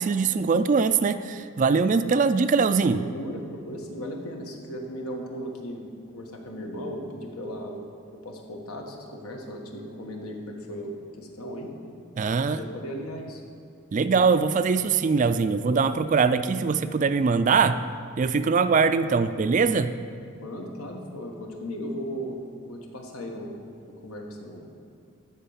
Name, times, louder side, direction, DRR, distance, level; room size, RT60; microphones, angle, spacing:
voice 1, 0.0-3.0 12.2-12.6 13.9-17.8 18.2-19.9, right 5 dB, 35° right, 11 dB, 0.3 m, -22 dB
voice 2, 2.9-5.8 6.1-7.8 8.1-11.7 12.4-13.4 20.4-23.5 23.8-24.7, equal, 90° left, 1 dB, 1.4 m, -37 dB
13.0 x 4.4 x 7.1 m, 2.6 s
head